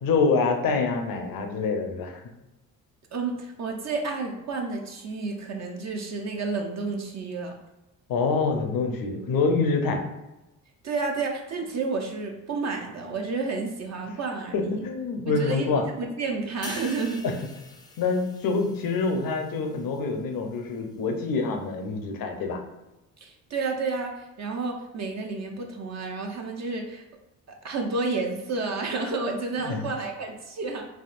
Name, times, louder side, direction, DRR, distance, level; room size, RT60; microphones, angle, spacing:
voice 1, 0.0-2.2 8.1-10.0 14.5-15.8 18.0-22.6 29.6-29.9, left 4 dB, 55° left, 4 dB, 0.7 m, -26 dB
voice 2, 3.1-7.5 10.8-14.8 15.3-17.2 23.2-27.0 27.5-30.9, right 3 dB, 45° right, 2 dB, 0.6 m, -30 dB
sound 1, 16.6-20.2 20.5-20.8, left 3 dB, 10° left, 0.4 m, -46 dB
3.5 x 2.4 x 2.4 m, 0.98 s
supercardioid pair, 60°, 40 cm